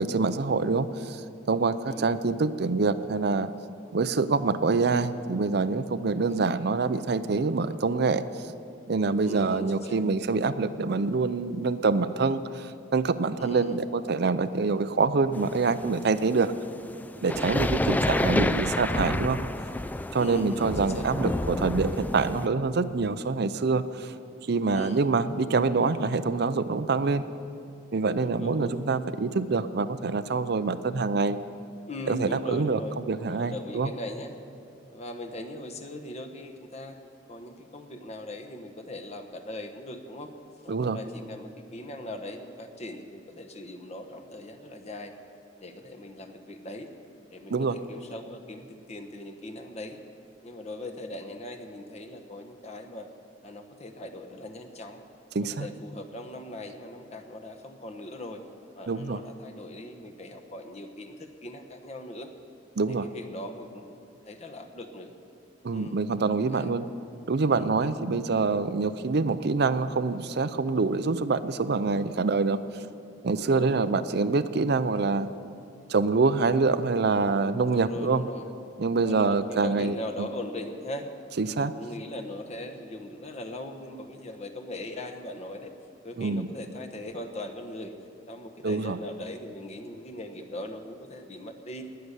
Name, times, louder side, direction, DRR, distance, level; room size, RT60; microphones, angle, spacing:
voice 1, 0.0-3.5 3.9-8.5 8.9-16.5 17.2-19.4 20.1-24.1 24.5-27.2 27.9-31.4 32.1-32.8 33.1-33.9 40.7-41.0 47.5-47.8 55.3-55.7 58.9-59.2 62.8-63.1 65.6-66.9 67.3-72.9 73.2-75.3 75.9-78.2 78.8-80.3 81.4-81.7 86.2-86.5 88.6-89.0, right 4 dB, 60° right, 12 dB, 0.5 m, -26 dB
voice 2, 9.2-10.0 13.4-13.8 17.4-18.0 20.2-21.1 24.7-25.0 28.1-28.8 31.9-34.4 34.9-37.0 37.3-40.3 40.6-45.1 45.6-46.9 47.3-50.0 50.4-53.1 53.4-55.0 55.4-58.4 58.8-62.3 62.9-63.9 64.2-65.1 65.7-66.0 66.5-66.7 67.5-67.9 73.4-73.9 77.6-78.5 79.0-81.1 81.5-85.7 86.0-87.9 88.3-91.8, left 1 dB, 35° left, 5 dB, 1.2 m, -40 dB
sound 1, 15.3-22.5, left 1 dB, 10° left, 0.3 m, -29 dB
18.5 x 6.8 x 9.9 m, 2.5 s
head